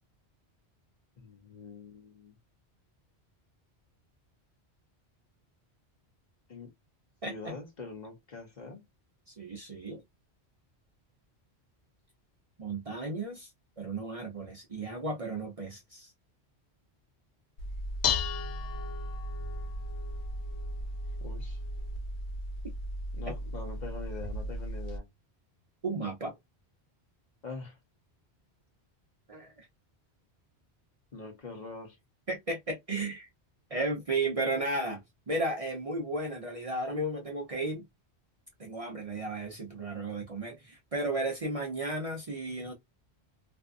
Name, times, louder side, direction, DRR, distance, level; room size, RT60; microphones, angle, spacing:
voice 1, 1.2-2.3 6.5-6.7 7.2-8.8 21.2-21.6 23.1-25.1 27.4-27.8 31.1-32.0, left 3 dB, 45° left, 0.8 m, -43 dB
voice 2, 7.2-7.5 9.4-10.0 12.6-13.5 13.8-16.1 23.3-23.4 25.8-26.3 29.3-29.7 32.3-33.3 33.7-35.0 35.3-37.8 38.6-42.7, right 2 dB, 40° right, 0.6 m, -34 dB
Dishes pots and pans, 17.6-25.0, left 2 dB, 85° left, 0.9 m, -35 dB
2.6 x 2.3 x 2.4 m
omnidirectional pair, 1.1 m